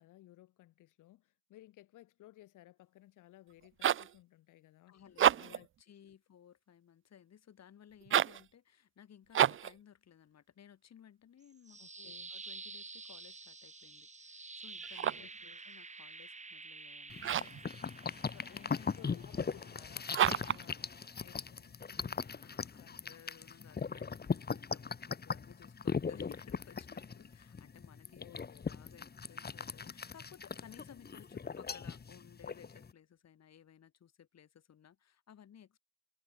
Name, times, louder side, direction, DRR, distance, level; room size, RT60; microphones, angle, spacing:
voice 1, 0.0-5.0 5.4-5.7 11.8-12.3 15.2-15.6 18.8-22.0 22.8-23.1 28.2-28.7, left 15 dB, 90° left, 7.3 m, -59 dB
sound 1, 3.5-4.2 5.1-5.7 8.0-8.5 9.3-9.8 14.8-15.4 17.2-17.6 20.1-20.7, right 10 dB, 45° right, 0.5 m, -30 dB
voice 2, 4.9-17.9 18.3-18.9 22.4-35.8, left 9 dB, 60° left, 5.4 m, -59 dB
sound 2, 11.4-21.5, right 3 dB, 25° right, 4.2 m, -50 dB
sound 3, 17.1-32.9, left 5 dB, 30° left, 1.8 m, -39 dB
cardioid pair, 90°, 30 cm